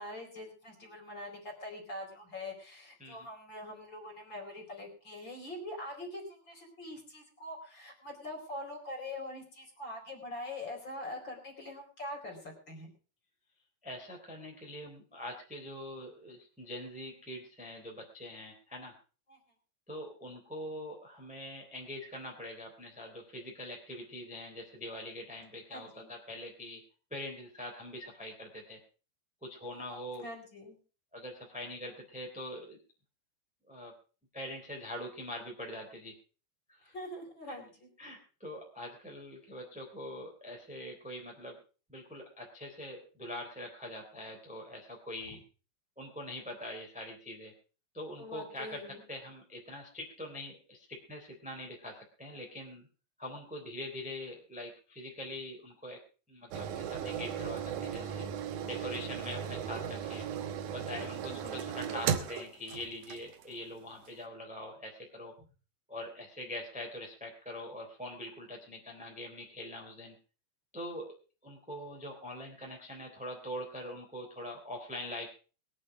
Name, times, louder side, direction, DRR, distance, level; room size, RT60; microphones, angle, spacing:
voice 1, 0.0-12.9 19.3-19.4 25.7-26.1 30.1-30.8 36.9-37.9 48.2-49.0 61.2-61.7, left 1 dB, 25° left, 2 dB, 4.7 m, -44 dB
voice 2, 13.8-18.9 19.9-26.8 27.1-28.8 29.4-30.2 31.1-32.8 33.7-33.9 34.3-36.1 36.7-36.9 37.5-37.6 38.0-41.6 41.9-45.4 46.0-47.5 47.9-48.8 49.1-52.9 53.2-56.0 56.3-58.3 58.6-60.3 60.7-65.3 65.9-70.1 70.7-71.1 71.4-75.4, left 1 dB, ahead, 1 dB, 2.7 m, -43 dB
sound 1, 56.5-63.5 64.1-64.2, right 8 dB, 65° right, 2.1 m, -36 dB
21.5 x 8.7 x 4.9 m, 0.37 s
omnidirectional pair, 4.8 m